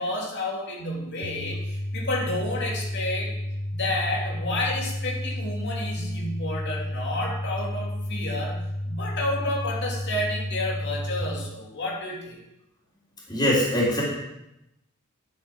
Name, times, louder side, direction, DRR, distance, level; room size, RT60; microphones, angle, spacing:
voice 1, 0.0-3.3 3.7-12.4, left 1 dB, 55° left, -2 dB, 2.9 m, -30 dB
sound 1, 1.2-11.2, left 1 dB, 45° right, 1.3 m, -31 dB
voice 2, 13.3-14.0, left 1 dB, 20° left, -5 dB, 3.3 m, -22 dB
11.0 x 7.3 x 6.1 m, 0.87 s
head